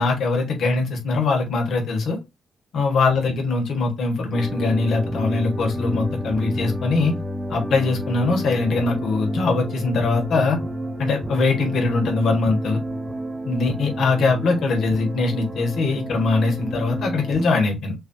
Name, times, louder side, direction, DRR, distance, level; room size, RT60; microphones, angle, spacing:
voice 1, 0.0-2.2 2.7-7.1 7.5-10.6 11.0-12.8 13.4-17.9, left 3 dB, 75° left, 2 dB, 1.5 m, -22 dB
sound 1, 4.3-17.5, right 1 dB, 10° right, 1.0 m, -30 dB
6.3 x 2.8 x 2.3 m, 0.24 s
cardioid pair, 95°, 0 cm